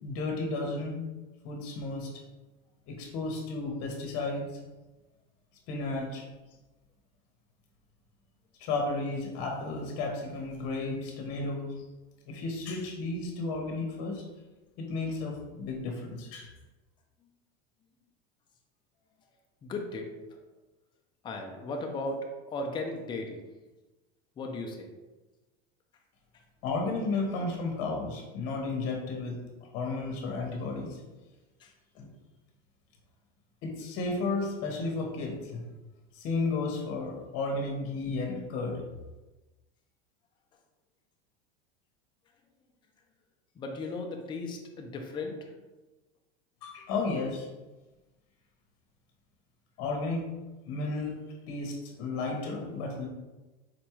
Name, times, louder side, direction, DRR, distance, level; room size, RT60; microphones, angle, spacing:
voice 1, 0.0-1.0 1.4-2.1 2.9-4.5 5.7-6.2 8.6-11.7 12.3-14.2 14.8-16.5 26.6-29.4 29.7-31.0 31.9-32.1 33.6-35.6 36.1-38.8 46.6-47.5 49.8-50.2 50.6-51.2 51.5-53.1, left 3 dB, 50° left, 0 dB, 0.9 m, -33 dB
voice 2, 19.6-20.1 21.2-23.4 24.4-24.9 31.6-31.7 43.6-45.5, left 2 dB, 15° left, 2 dB, 0.3 m, -36 dB
4.1 x 2.2 x 3.0 m, 1.1 s
supercardioid pair, 120°, 31 cm